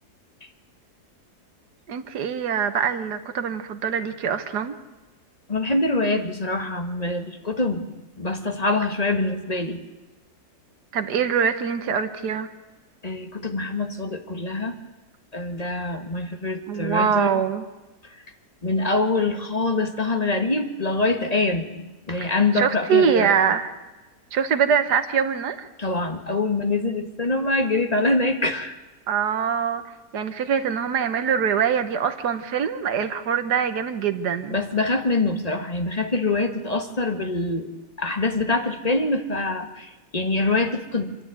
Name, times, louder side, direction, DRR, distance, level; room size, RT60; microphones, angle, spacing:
voice 1, 1.9-4.8 10.9-12.5 16.7-17.7 22.2-23.8 24.3-25.7 29.1-29.8 30.1-34.6, right 7 dB, 85° right, 8 dB, 1.7 m, -23 dB
voice 2, 5.5-9.8 13.0-14.7 15.3-17.4 18.6-23.4 25.8-28.7 34.5-37.7 38.0-41.2, left 2 dB, 25° left, 6 dB, 1.5 m, -25 dB
27.0 x 10.5 x 9.4 m, 1.2 s
omnidirectional pair, 1.7 m